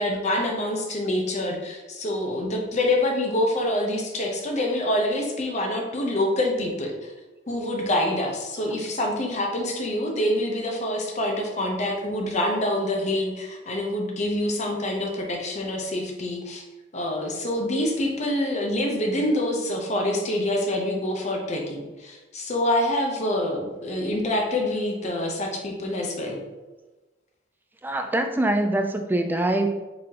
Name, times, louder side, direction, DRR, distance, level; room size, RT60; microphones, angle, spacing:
voice 1, 0.0-7.1 7.5-16.6 16.9-26.4, left 1 dB, 40° left, 1 dB, 0.7 m, -26 dB
voice 2, 27.8-29.7, right 1 dB, 10° right, 5 dB, 0.3 m, -24 dB
4.7 x 4.0 x 2.9 m, 1.2 s
head